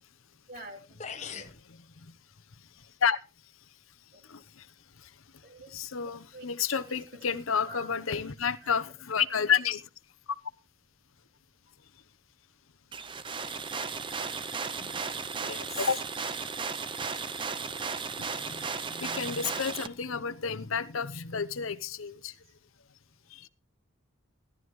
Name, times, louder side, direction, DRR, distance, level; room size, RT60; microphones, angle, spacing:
voice 1, 0.5-1.4 4.1-4.2 5.4-5.7 6.3-6.4 6.7-8.0 8.6-8.7, right 1 dB, 45° right, 3 dB, 3.3 m, -47 dB
sound 1, 0.6-0.7 1.0-1.6, left 6 dB, 35° left, 1.1 m, -39 dB
voice 2, 1.2-2.2 2.8-3.2 4.3-4.7 5.0-5.1 5.7-9.9 14.8-15.0 15.3-16.0 17.0-17.1 18.1-22.4 23.3-23.5, left 7 dB, 80° left, 12 dB, 0.8 m, -31 dB
sound 2, 12.9-19.9, right 5 dB, 25° right, 0.6 m, -35 dB
16.0 x 12.0 x 3.1 m, 0.31 s
head